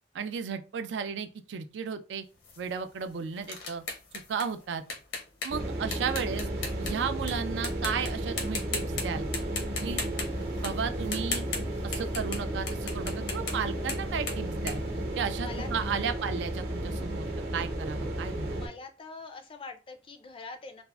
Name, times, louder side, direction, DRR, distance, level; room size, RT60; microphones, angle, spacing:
voice 1, 0.1-2.2 2.6-3.8 4.3-4.8 5.4-6.5 6.8-9.3 9.8-10.0 10.6-11.5 11.8-14.8 15.2-18.6, right 6 dB, 75° right, 0.3 m, -34 dB
sound 1, 2.4-7.3 7.6-8.1 8.4-9.0 9.3-15.7, left 4 dB, 85° left, 0.8 m, -37 dB
sound 2, 5.5-18.7, right 1 dB, 55° right, 0.8 m, -33 dB
voice 2, 15.3-15.7 18.5-20.8, left 4 dB, 30° left, 0.3 m, -43 dB
3.4 x 2.0 x 2.2 m
head